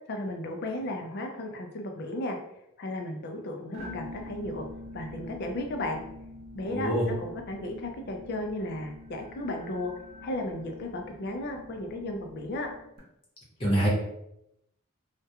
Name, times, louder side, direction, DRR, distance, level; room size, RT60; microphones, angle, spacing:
voice 1, 0.1-2.4 2.8-4.7 4.9-6.0 6.5-9.9 10.2-12.7, left 1 dB, 50° left, 3 dB, 0.4 m, -34 dB
sound 1, 3.7-13.0, left 2 dB, 45° right, 0.7 m, -46 dB
voice 2, 6.7-7.1 13.6-13.9, right 1 dB, 25° left, -5 dB, 0.8 m, -25 dB
2.3 x 2.1 x 2.8 m, 0.80 s
head